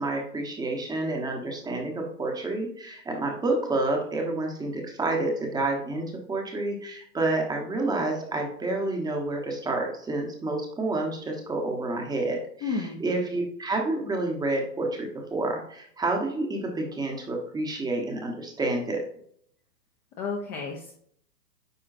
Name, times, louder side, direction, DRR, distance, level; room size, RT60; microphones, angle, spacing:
voice 1, 0.0-12.4 13.0-19.1, right 2 dB, 10° right, 1 dB, 1.0 m, -29 dB
voice 2, 12.6-13.0 20.2-20.9, left 4 dB, 20° left, 0 dB, 0.7 m, -31 dB
9.0 x 4.8 x 2.6 m, 0.65 s
hypercardioid pair, 140°, 50 cm